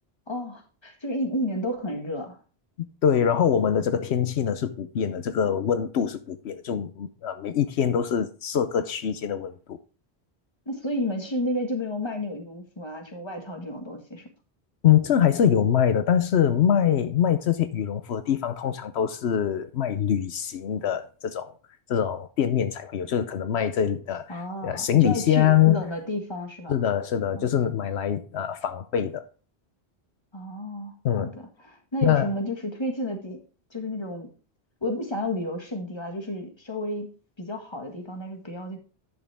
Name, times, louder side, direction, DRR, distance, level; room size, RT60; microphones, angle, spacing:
voice 1, 0.3-2.4 10.6-14.3 24.3-26.8 27.4-27.5 30.3-33.4 33.7-34.3 34.8-37.1 37.4-38.8, left 1 dB, 25° left, 1.7 m, -31 dB
voice 2, 2.8-9.8 14.8-21.5 21.9-25.8 26.7-29.2 31.0-31.3 32.0-32.3, left 9 dB, 80° left, 1.0 m, -24 dB
10.5 x 6.5 x 3.4 m
omnidirectional pair, 1.1 m